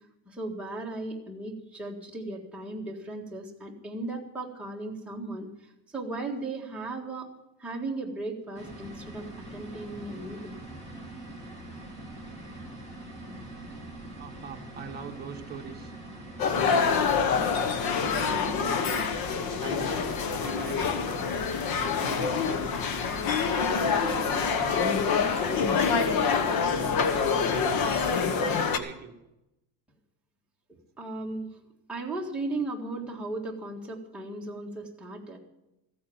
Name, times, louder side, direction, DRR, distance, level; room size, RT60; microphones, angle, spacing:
voice 1, 0.3-5.5 5.9-7.3 7.6-10.6 31.0-31.5 31.9-35.4, right 2 dB, 5° right, -3 dB, 1.8 m, -36 dB
sound 1, 8.5-28.5, right 1 dB, 15° left, 2.5 m, -43 dB
voice 2, 14.2-15.9 16.5-17.0 18.0-19.0 19.6-21.2 21.8-22.8 23.8-29.2, right 6 dB, 25° right, 1 dB, 1.4 m, -42 dB
sound 2, 16.4-28.8, left 6 dB, 55° left, 1.1 m, -26 dB
15.0 x 8.6 x 7.2 m, 0.91 s
cardioid pair, 180°, 42 cm